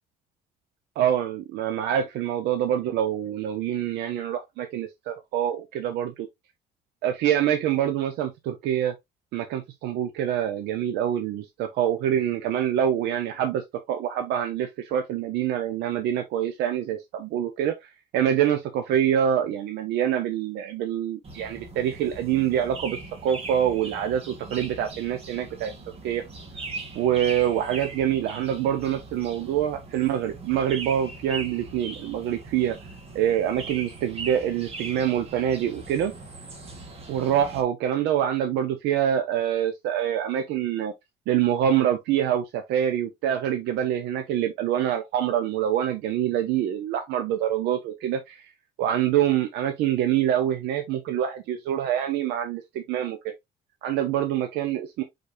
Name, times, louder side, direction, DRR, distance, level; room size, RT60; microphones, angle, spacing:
voice 1, 1.0-6.3 7.0-9.0 9.3-13.6 13.9-25.7 26.0-26.2 26.9-32.7 33.1-36.1 37.1-40.9 41.3-48.5 48.8-53.2 53.8-55.0, right 10 dB, 85° right, 0.8 m, -25 dB
sound 1, 21.2-37.6, right 3 dB, 35° right, 1.8 m, -40 dB
4.9 x 4.1 x 2.6 m
cardioid pair, 110°, 17 cm